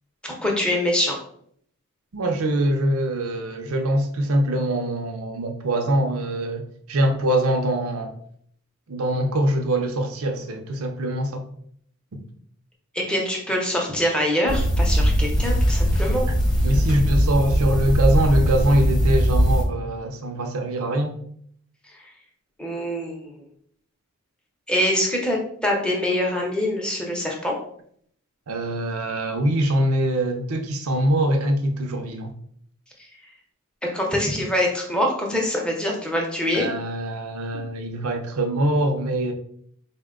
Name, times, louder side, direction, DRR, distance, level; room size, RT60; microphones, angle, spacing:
voice 1, 0.2-1.2 12.9-16.3 22.6-23.3 24.7-27.5 33.9-36.7 37.5-37.6, left 1 dB, 5° left, 0.6 m, -24 dB
voice 2, 2.1-6.6 6.9-8.1 8.9-11.4 16.6-21.1 28.5-32.3 36.5-39.3, right 1 dB, 70° right, 0.6 m, -23 dB
sound 1, 14.5-19.6, equal, 20° left, 1.0 m, -20 dB
4.2 x 2.1 x 3.6 m
head